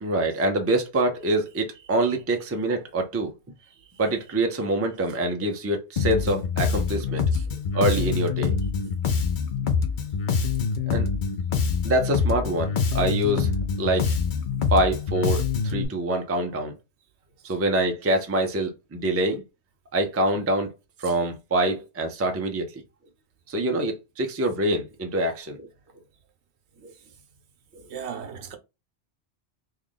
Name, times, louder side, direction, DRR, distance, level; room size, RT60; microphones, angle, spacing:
voice 1, 0.0-3.3 4.0-7.2 7.7-8.5 10.9-11.1 11.8-13.5 13.8-14.1 14.7-16.8 17.4-19.4 19.9-20.7 21.0-22.8 23.5-25.7 26.8-26.9, right 1 dB, 20° right, 0.4 m, -25 dB
Bass guitar, 6.0-15.8, left 5 dB, 55° left, 0.7 m, -25 dB
voice 2, 27.9-28.6, right 7 dB, 75° right, 0.9 m, -38 dB
3.2 x 2.4 x 3.7 m
omnidirectional pair, 1.1 m